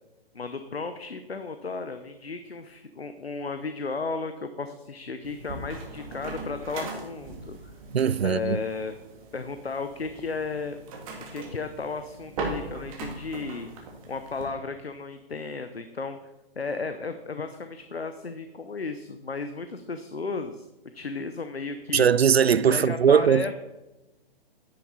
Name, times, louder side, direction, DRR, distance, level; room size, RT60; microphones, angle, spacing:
voice 1, 0.3-7.7 8.2-8.9 9.3-10.8 11.3-13.7 14.1-16.2 16.6-20.7 20.9-22.1 22.7-23.5, left 4 dB, 90° left, 0.8 m, -34 dB
sound 1, 5.2-14.4, right 3 dB, 35° right, 2.4 m, -39 dB
voice 2, 7.9-8.6 21.9-23.5, right 7 dB, 85° right, 0.5 m, -20 dB
10.0 x 9.5 x 4.1 m
figure-of-eight pair, 125°, 30 cm